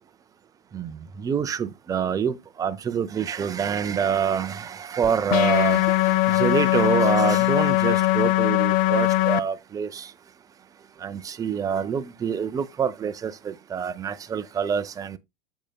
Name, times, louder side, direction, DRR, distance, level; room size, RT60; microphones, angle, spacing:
voice 1, 0.7-10.1 11.0-15.2, right 7 dB, 20° right, 0.6 m, -26 dB
sound 1, 5.3-9.4, left 16 dB, 50° left, 0.5 m, -20 dB
8.7 x 6.7 x 2.3 m
supercardioid pair, 135°, 19 cm